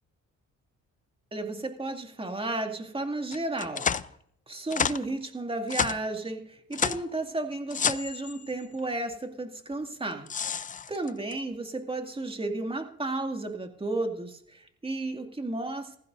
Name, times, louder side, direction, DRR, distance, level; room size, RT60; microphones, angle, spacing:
voice 1, 1.3-3.9 4.5-10.6 10.9-16.0, right 2 dB, 20° right, 5 dB, 2.2 m, -33 dB
sound 1, 3.3-4.1 4.7-5.1 5.7-6.0 6.7-7.1 7.7-8.8 10.0-11.3, left 7 dB, 25° left, 0.4 m, -30 dB
16.0 x 15.0 x 2.6 m, 0.66 s
cardioid pair, 90°, 30 cm